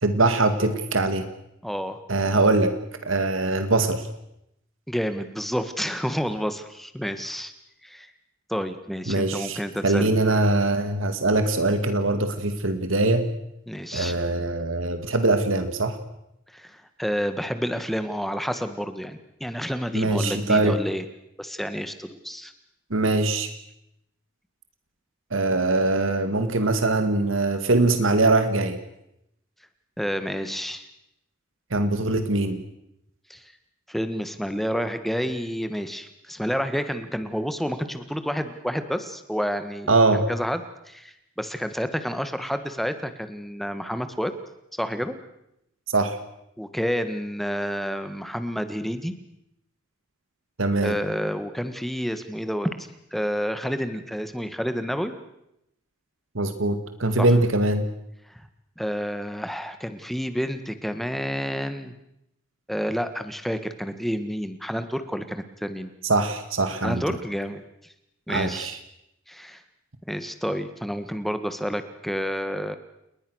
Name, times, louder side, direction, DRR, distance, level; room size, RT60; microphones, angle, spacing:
voice 1, 0.0-1.2 2.1-2.7 3.0-4.0 9.1-13.3 13.9-16.0 19.9-20.8 22.9-23.5 25.3-28.8 31.7-32.6 39.9-40.2 45.9-46.2 50.6-51.0 56.4-57.9 66.0-67.0 68.3-68.8, right 2 dB, 80° right, 8 dB, 2.1 m, -22 dB
voice 2, 1.6-2.0 4.9-7.5 7.8-8.1 8.5-10.1 13.7-14.1 16.5-21.1 21.4-22.5 30.0-30.8 33.3-33.5 33.9-39.9 40.1-44.3 44.8-45.1 46.6-49.1 50.8-55.1 57.2-57.3 58.3-58.5 58.8-61.9 62.7-65.9 66.8-67.9 68.3-68.8 69.3-69.6 70.1-72.8, equal, ahead, 9 dB, 1.7 m, -29 dB
29.5 x 20.5 x 6.5 m, 0.82 s
head